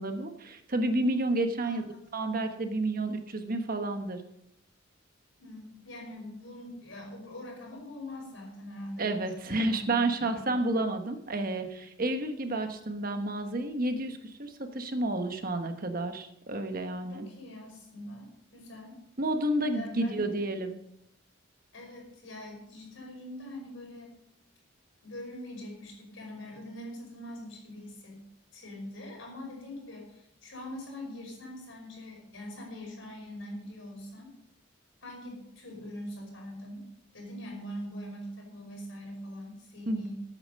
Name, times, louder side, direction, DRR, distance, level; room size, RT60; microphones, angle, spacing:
voice 1, 0.0-1.8 2.1-4.2 9.0-17.3 19.2-20.8 39.9-40.0, right 2 dB, 45° right, 6 dB, 1.2 m, -30 dB
voice 2, 1.6-2.2 5.4-9.9 10.2-10.3 17.1-19.0 19.7-20.4 21.7-24.2 25.0-28.2 28.5-34.3 35.0-36.9 37.1-40.2, left 1 dB, 70° left, 0 dB, 5.3 m, -43 dB
13.5 x 8.9 x 5.4 m, 0.78 s
head